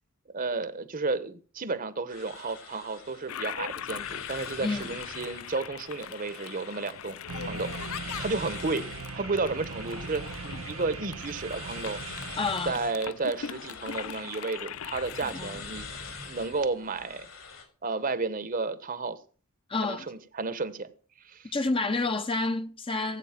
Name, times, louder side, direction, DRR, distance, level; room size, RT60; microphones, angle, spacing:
voice 1, 0.3-7.7 8.2-8.9 9.1-12.0 12.6-15.9 16.3-17.3 17.8-19.2 19.8-20.9 21.2-21.5, right 3 dB, 40° right, 1.2 m, -32 dB
sound 1, 2.1-17.6, left 4 dB, 65° left, 4.8 m, -45 dB
Toilet flush, 3.3-15.3, left 9 dB, 85° left, 0.5 m, -41 dB
voice 2, 4.6-5.0 12.4-12.7 15.3-15.6 19.7-20.1 21.5-23.2, left 3 dB, 25° left, 1.0 m, -29 dB
sound 2, 7.3-12.6, right 5 dB, 75° right, 0.6 m, -40 dB
17.5 x 8.3 x 6.0 m
head